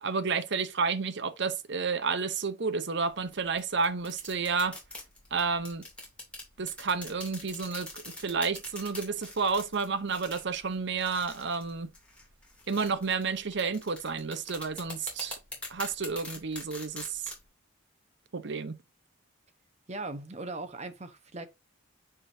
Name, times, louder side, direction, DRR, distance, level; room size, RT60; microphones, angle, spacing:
voice 1, 0.0-4.8 5.3-5.8 6.6-11.9 12.7-15.4 15.7-17.3 18.3-18.8, right 5 dB, 55° right, 0.7 m, -31 dB
sound 1, 3.0-17.4, left 2 dB, 5° left, 2.7 m, -45 dB
voice 2, 19.9-21.5, right 2 dB, 30° right, 0.9 m, -39 dB
9.1 x 4.9 x 2.7 m
head